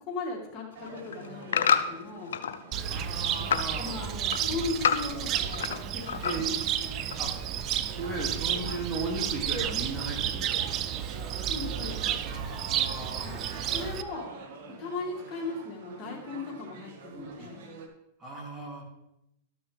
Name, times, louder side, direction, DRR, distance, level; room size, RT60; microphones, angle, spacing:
voice 1, 0.0-2.4 3.5-6.2 6.8-7.2 11.4-12.2 13.2-14.3 14.8-17.6, left 3 dB, 35° left, -2 dB, 2.5 m, -38 dB
sound 1, 0.7-2.6 3.0-3.7 4.1-5.8 6.1-6.6 7.1-7.2, left 7 dB, 85° left, 0.6 m, -28 dB
sound 2, 0.7-17.9, right 4 dB, 65° right, 1.5 m, -46 dB
Cricket, 2.7-14.0, right 10 dB, 40° right, 0.5 m, -32 dB
voice 2, 2.9-4.0 4.3-4.4 6.2-6.6 7.2-7.3 8.0-11.4 12.3-13.6 17.1-17.5 18.2-18.8, right 2 dB, 20° right, -1 dB, 2.5 m, -37 dB
13.0 x 6.1 x 3.4 m, 0.84 s
hypercardioid pair, 120°, 0 cm